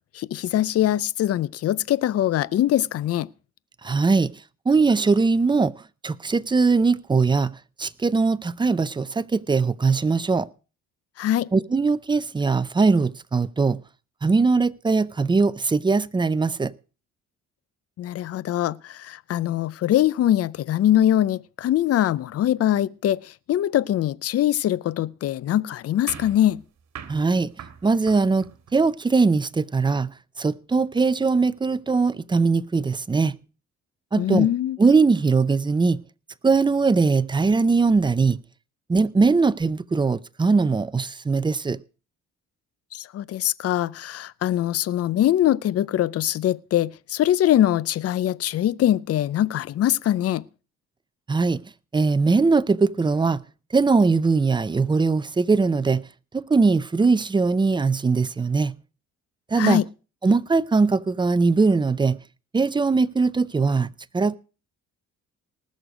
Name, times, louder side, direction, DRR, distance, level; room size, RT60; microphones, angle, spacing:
voice 1, 0.1-3.3 11.2-11.5 18.0-26.6 34.2-34.8 42.9-50.4 59.6-59.8, left 12 dB, 55° left, 0.5 m, -22 dB
voice 2, 3.8-4.3 4.7-5.7 6.0-10.5 11.5-13.8 14.2-16.7 27.1-27.5 27.8-30.1 30.4-33.3 34.1-34.5 34.8-36.0 36.4-38.4 38.9-41.8 51.3-51.6 51.9-53.4 53.7-56.0 56.3-58.8 59.5-59.8 60.2-62.2 62.5-64.3, right 4 dB, 15° right, 0.5 m, -21 dB
sound 1, 26.1-29.0, right 8 dB, 65° right, 1.9 m, -42 dB
19.5 x 6.5 x 5.0 m
cardioid pair, 90°, 30 cm